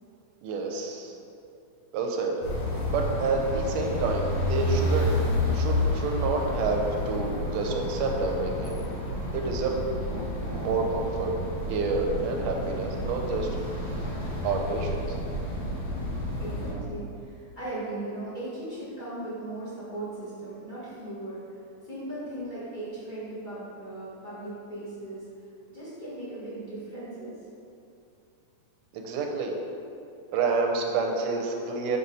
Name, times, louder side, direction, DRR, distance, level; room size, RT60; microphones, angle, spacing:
voice 1, 0.4-1.1 1.9-2.4 2.9-5.1 5.4-8.7 9.3-9.8 10.1-11.3 11.7-13.5 14.4-15.2 28.9-29.5 30.3-32.0, right 4 dB, 80° right, 2 dB, 1.7 m, -29 dB
sound 1, 2.4-16.7, left 1 dB, 70° left, 2.3 m, -30 dB
voice 2, 16.4-25.2 25.7-27.3, right 2 dB, 40° left, -11 dB, 0.6 m, -38 dB
5.4 x 4.8 x 4.0 m, 2.7 s
omnidirectional pair, 3.4 m